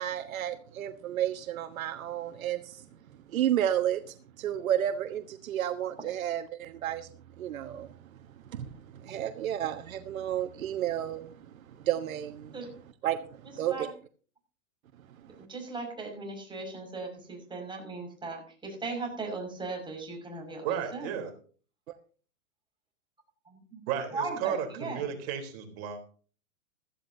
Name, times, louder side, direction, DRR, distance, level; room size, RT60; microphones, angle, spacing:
voice 1, 0.0-2.9 3.3-7.1 7.4-8.1 8.4-12.5 13.0-13.9 15.3-15.4, right 11 dB, 80° right, 8 dB, 1.3 m, -32 dB
voice 2, 15.2-21.1 23.5-23.8 24.1-25.0, right 3 dB, 10° right, 1 dB, 5.9 m, -38 dB
voice 3, 20.6-21.3 23.9-26.1, right 9 dB, 50° right, 5 dB, 3.8 m, -33 dB
16.0 x 14.0 x 2.8 m, 0.40 s
hypercardioid pair, 130°, 41 cm